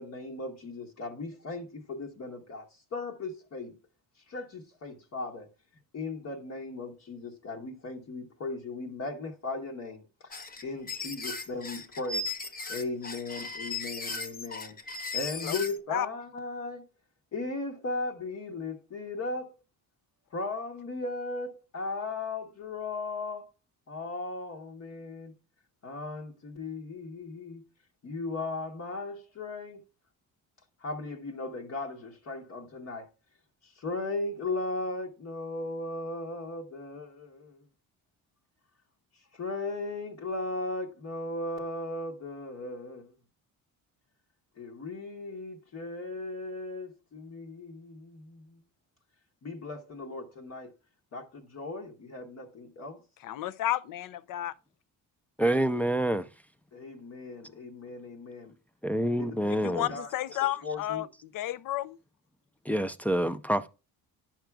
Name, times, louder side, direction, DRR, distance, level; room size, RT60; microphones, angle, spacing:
voice 1, 0.0-3.8 4.3-5.5 5.9-12.3 12.7-16.9 17.3-19.6 20.3-23.5 23.9-25.3 25.8-27.6 28.0-29.8 30.8-33.1 33.6-37.6 39.1-43.1 44.6-48.6 49.4-50.7 51.1-53.0 56.7-58.5 59.2-59.5 59.9-60.1 60.6-61.1, left 3 dB, 45° left, 1.1 m, -37 dB
sound 1, 10.3-15.8, left 3 dB, 25° left, 0.8 m, -36 dB
voice 2, 53.2-54.5 59.6-62.0, left 13 dB, 60° left, 0.6 m, -32 dB
voice 3, 55.4-56.3 58.8-59.9 62.7-63.7, right 1 dB, 5° left, 0.3 m, -27 dB
10.0 x 5.9 x 2.3 m
cardioid pair, 120°, 37 cm